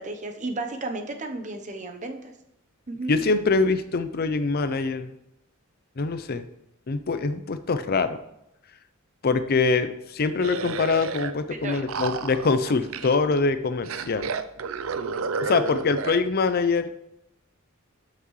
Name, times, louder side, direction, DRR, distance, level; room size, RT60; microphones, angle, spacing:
voice 1, 0.0-2.3 2.9-3.1 11.6-11.8, right 2 dB, 35° right, 5 dB, 0.9 m, -33 dB
voice 2, 3.1-5.1 6.0-6.5 6.9-8.2 9.2-14.3 15.4-16.9, left 4 dB, 45° left, 11 dB, 0.6 m, -24 dB
sound 1, 10.4-11.3 11.6-13.4 13.8-16.2, right 5 dB, 75° right, 0.5 m, -31 dB
12.5 x 5.9 x 3.2 m, 0.83 s
head